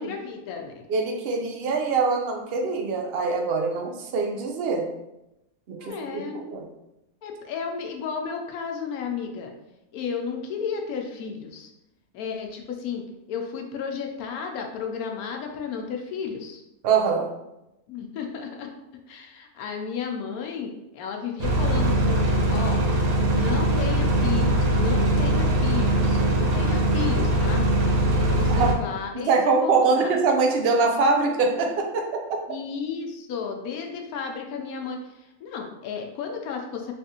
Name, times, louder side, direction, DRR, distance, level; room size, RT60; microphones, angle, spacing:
voice 1, 0.0-0.8 3.7-3.8 5.8-6.4 7.2-9.5 9.9-11.7 12.1-16.6 17.9-18.7 19.1-22.8 23.3-27.7 28.1-30.1 32.5-36.9, left 6 dB, 80° left, 3 dB, 1.1 m, -33 dB
voice 2, 0.9-4.8 5.7-6.6 16.8-17.3 28.5-28.7 29.3-32.1, right 4 dB, 60° right, 2 dB, 0.6 m, -23 dB
sound 1, 21.4-28.7, right 1 dB, 80° right, 1.2 m, -21 dB
3.5 x 3.3 x 2.8 m, 0.91 s
omnidirectional pair, 1.5 m